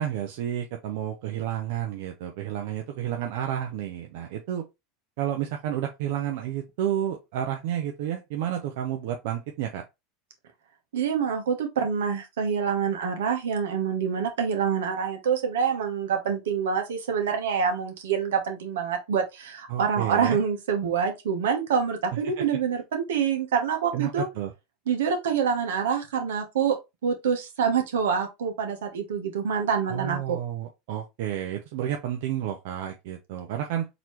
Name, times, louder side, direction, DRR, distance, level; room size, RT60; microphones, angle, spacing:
voice 1, 0.0-4.6 5.2-9.8 19.7-20.4 22.1-22.4 23.9-24.5 29.9-33.9, right 10 dB, 70° right, 0.7 m, -31 dB
voice 2, 10.9-24.3 24.9-26.8 27.0-30.4, right 7 dB, 90° right, 1.2 m, -26 dB
4.0 x 2.9 x 3.1 m
supercardioid pair, 110°, 0 cm